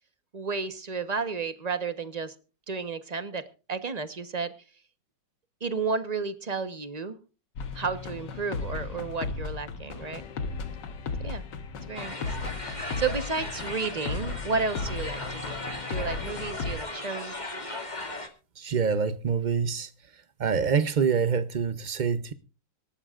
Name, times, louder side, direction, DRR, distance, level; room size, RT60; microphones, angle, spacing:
voice 1, 0.3-2.3 2.7-4.5 5.6-7.2 7.7-10.2 11.2-11.4 11.7-12.6 13.0-15.6 15.9-17.3, right 4 dB, 25° right, 1.0 m, -32 dB
sound 1, 7.6-16.8, left 4 dB, 70° left, 1.9 m, -35 dB
sound 2, 11.9-18.3, left 2 dB, 25° left, 2.5 m, -37 dB
voice 2, 18.6-22.3, right 6 dB, 75° right, 0.4 m, -26 dB
25.0 x 13.0 x 2.5 m
omnidirectional pair, 2.0 m